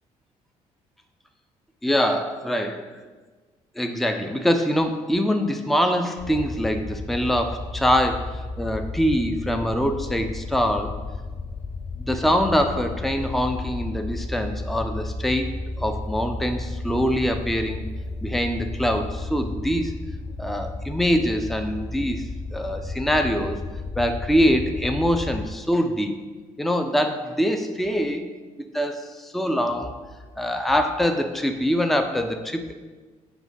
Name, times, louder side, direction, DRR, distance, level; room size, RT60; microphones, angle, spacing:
voice 1, 1.8-2.9 3.8-10.9 12.0-17.9 18.2-19.9 20.4-23.6 24.0-26.2 26.6-28.3 28.7-30.0 30.4-32.7, equal, ahead, 6 dB, 0.7 m, -24 dB
sound 1, 6.2-25.4, left 3 dB, 35° left, 1.0 m, -33 dB
6.1 x 5.1 x 5.3 m, 1.4 s
figure-of-eight pair, 45°, 18 cm